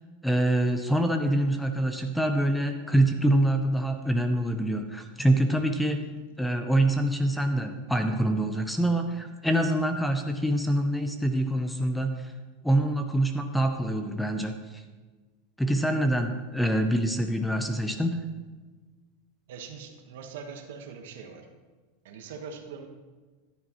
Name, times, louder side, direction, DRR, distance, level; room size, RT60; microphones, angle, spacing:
voice 1, 0.2-6.0 6.4-12.3 12.6-14.8 15.6-18.2, right 1 dB, 5° left, 6 dB, 0.6 m, -25 dB
voice 2, 19.5-21.5 22.0-22.9, right 6 dB, 75° right, 3 dB, 1.3 m, -42 dB
13.5 x 10.5 x 3.1 m, 1.3 s
supercardioid pair, 145°, 0 cm